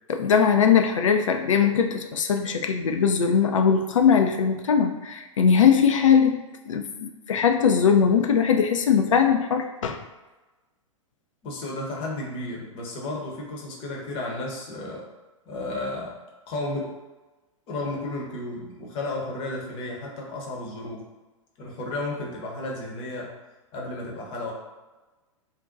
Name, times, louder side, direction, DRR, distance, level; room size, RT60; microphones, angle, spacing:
voice 1, 0.1-10.0, left 7 dB, 70° left, 5 dB, 0.4 m, -20 dB
voice 2, 11.4-15.1 15.5-16.2 16.5-17.0 17.7-21.1 21.6-23.3 23.7-24.5, left 2 dB, 30° left, -1 dB, 0.8 m, -33 dB
2.6 x 2.1 x 3.8 m, 1.2 s
figure-of-eight pair, 100°, 17 cm